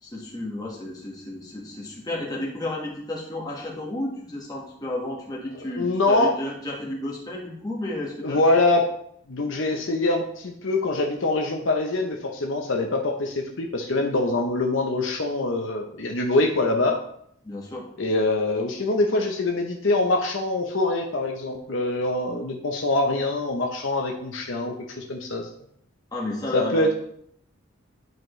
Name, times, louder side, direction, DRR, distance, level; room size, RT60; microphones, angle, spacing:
voice 1, 0.0-8.5 17.4-17.9 26.1-26.9, left 1 dB, 20° left, -4 dB, 1.6 m, -32 dB
voice 2, 5.8-6.3 8.2-8.9 9.3-17.0 18.0-25.5 26.5-26.9, left 2 dB, 60° left, 2 dB, 0.7 m, -24 dB
10.5 x 4.6 x 3.2 m, 0.69 s
head